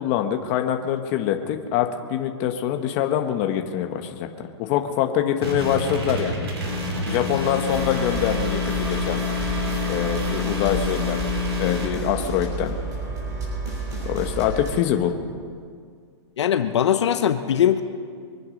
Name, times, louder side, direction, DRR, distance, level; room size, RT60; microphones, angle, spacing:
voice 1, 0.0-4.3 4.6-6.5 7.1-9.2 9.9-11.3 11.6-12.8 14.0-15.1, left 10 dB, 30° left, 5 dB, 1.2 m, -24 dB
sound 1, 5.4-11.9, left 3 dB, 60° right, 4.1 m, -27 dB
sound 2, 7.7-14.7, right 2 dB, 20° right, 4.8 m, -30 dB
voice 2, 16.4-17.8, left 9 dB, 70° left, 9 dB, 1.0 m, -20 dB
24.5 x 9.8 x 5.3 m, 2.1 s
hypercardioid pair, 155°, 15 cm